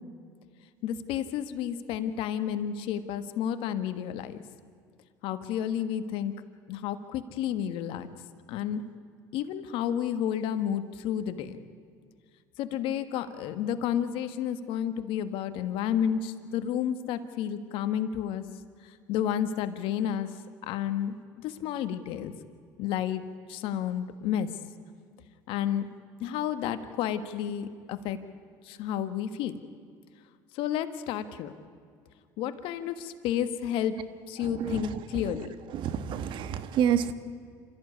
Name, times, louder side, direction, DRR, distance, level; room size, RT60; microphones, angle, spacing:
voice 1, 0.8-4.4 5.2-6.3 6.7-8.1 8.5-8.8 9.3-11.6 12.6-18.4 19.1-20.3 20.7-22.3 22.8-23.2 23.5-24.5 25.5-25.9 26.2-28.2 28.7-29.5 30.6-31.5 32.4-34.0 34.3-35.5, left 9 dB, 70° left, 10 dB, 1.5 m, -31 dB
voice 2, 34.4-35.0 35.7-37.1, right 9 dB, 60° right, 11 dB, 1.4 m, -29 dB
27.5 x 14.0 x 9.8 m, 2.2 s
supercardioid pair, 80°, 9 cm